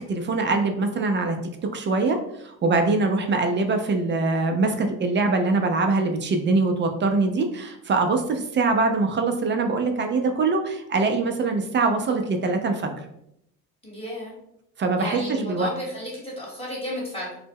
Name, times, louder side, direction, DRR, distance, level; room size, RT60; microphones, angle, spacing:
voice 1, 0.0-1.4 1.7-12.9 14.8-15.7, right 3 dB, 30° right, 5 dB, 0.4 m, -23 dB
voice 2, 13.8-14.3 15.0-17.4, equal, 15° left, -5 dB, 1.1 m, -33 dB
2.0 x 2.0 x 3.4 m, 0.77 s
supercardioid pair, 85°, 37 cm